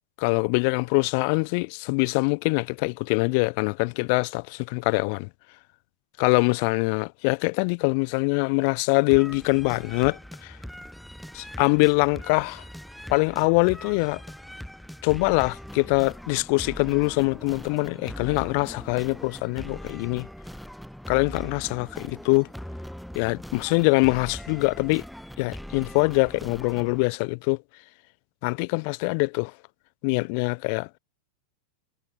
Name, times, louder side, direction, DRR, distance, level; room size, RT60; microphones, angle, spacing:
voice 1, 0.2-5.3 6.2-10.6 11.3-12.6 13.1-14.2 15.0-20.3 21.1-22.5 23.1-25.0 25.4-27.6 28.4-29.5 30.0-30.9, left 35 dB, 45° left, 0.7 m, -24 dB
sound 1, 9.1-27.1, equal, ahead, 3.0 m, -41 dB
figure-of-eight pair, 90°, 0 cm